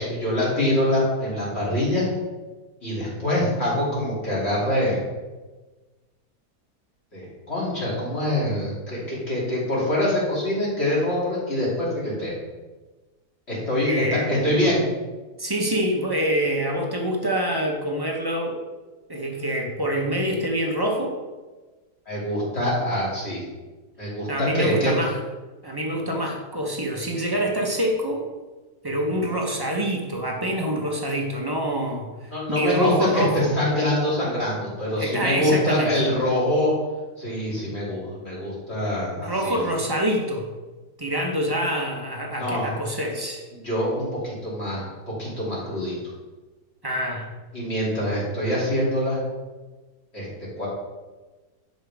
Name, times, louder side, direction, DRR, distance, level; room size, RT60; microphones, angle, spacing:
voice 1, 0.0-2.1 2.8-5.0 7.1-12.3 13.5-14.8 22.1-23.4 24.0-24.9 32.3-36.7 37.2-39.6 42.4-42.6 43.6-44.9 45.2-45.9 47.5-49.2 50.1-50.3 50.6-50.7, left 1 dB, 35° left, -6 dB, 3.3 m, -24 dB
voice 2, 13.8-14.7 15.4-18.6 19.1-21.1 24.3-25.2 25.6-28.3 28.8-33.5 35.0-35.9 39.2-40.5 41.0-43.4 46.8-47.2, right 1 dB, 15° right, 0 dB, 0.9 m, -26 dB
11.0 x 5.3 x 3.6 m, 1.2 s
omnidirectional pair, 1.8 m